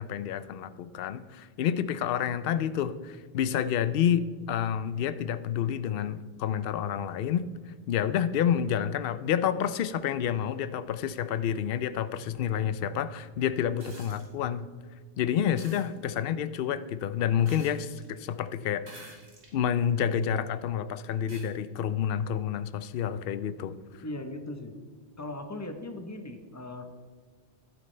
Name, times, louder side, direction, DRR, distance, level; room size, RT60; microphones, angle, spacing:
voice 1, 0.0-7.5 7.9-14.7 15.2-19.2 19.5-23.8, left 9 dB, 65° left, 13 dB, 0.7 m, -29 dB
sound 1, 13.8-14.3 15.6-15.9 17.5-18.1 18.8-19.6 20.2-20.3 21.3-21.5 23.0-23.1, right 2 dB, 90° right, 2.2 m, -49 dB
voice 2, 24.0-24.8 25.2-26.9, left 2 dB, 15° left, 6 dB, 0.8 m, -38 dB
12.0 x 9.4 x 3.3 m, 1.5 s
omnidirectional pair, 1.1 m